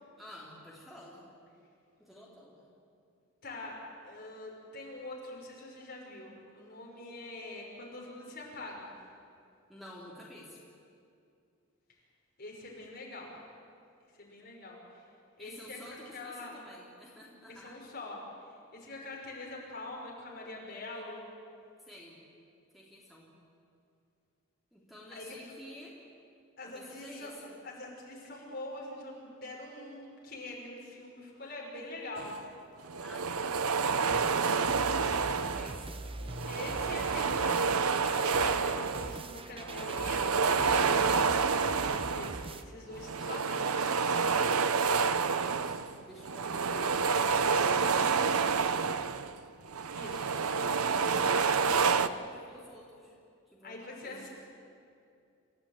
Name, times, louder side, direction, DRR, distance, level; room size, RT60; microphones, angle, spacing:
voice 1, 0.2-1.2 2.0-2.6 9.7-10.6 15.4-17.8 21.9-22.2 22.7-23.3 24.7-26.0 26.6-27.6 33.0-33.6 34.0-36.0 40.5-42.1 44.6-47.2 47.8-48.9 50.8-53.2 53.5-54.3, left 1 dB, ahead, -5 dB, 3.3 m, -50 dB
voice 2, 3.4-3.8 4.0-8.9 12.4-13.3 14.1-15.0 15.4-15.8 16.1-16.5 17.5-18.2 18.7-21.3 25.1-25.4 26.6-27.3 27.6-32.4 36.4-40.9 42.1-42.3 42.6-43.9 49.9-50.4 51.3-51.5 53.6-54.3, left 2 dB, 45° left, -2 dB, 5.7 m, -44 dB
sound 1, 32.2-32.4 32.8-35.9 36.3-39.3 39.6-42.6 43.0-49.3 49.7-52.1, right 5 dB, 85° right, 0.8 m, -29 dB
sound 2, 34.1-42.6, right 2 dB, 25° right, 0.8 m, -43 dB
28.0 x 15.5 x 9.2 m, 2.5 s
head